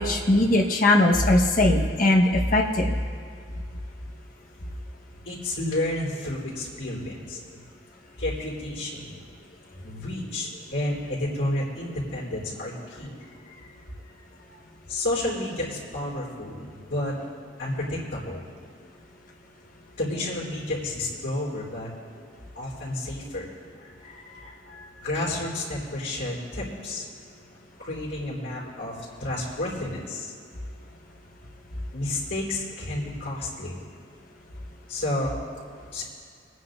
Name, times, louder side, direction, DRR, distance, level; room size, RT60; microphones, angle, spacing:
voice 1, 0.0-3.0, left 1 dB, 50° left, 0 dB, 1.3 m, -20 dB
voice 2, 5.2-7.4 8.2-9.2 9.8-13.7 14.2-14.3 14.9-17.1 17.6-18.5 20.0-21.9 22.5-23.5 23.8-27.1 27.8-30.3 31.9-33.8 34.9-35.3 35.9-36.0, left 1 dB, 90° left, -8 dB, 3.5 m, -31 dB
27.0 x 9.5 x 2.6 m, 2.2 s
head